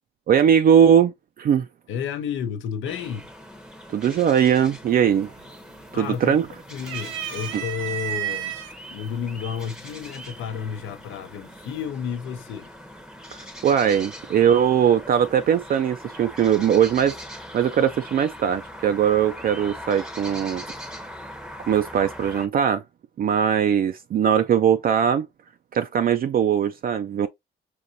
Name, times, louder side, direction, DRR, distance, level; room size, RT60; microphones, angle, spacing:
voice 1, 0.3-1.1 1.4-1.7 3.9-5.3 5.9-6.4 7.5-7.6 13.6-17.1 17.5-20.6 21.7-22.8 23.2-25.3 25.7-27.3, right 8 dB, 50° right, 0.4 m, -20 dB
voice 2, 1.9-3.3 5.9-6.4 6.7-8.5 8.9-12.7, left 7 dB, 80° left, 0.7 m, -31 dB
sound 1, 2.9-22.5, equal, 5° right, 0.7 m, -41 dB
sound 2, 4.9-5.3 5.7-6.4 6.8-8.7 9.6-9.7 10.9-11.4, right 10 dB, 90° right, 0.8 m, -31 dB
5.3 x 2.9 x 2.6 m
cardioid pair, 90°, 20 cm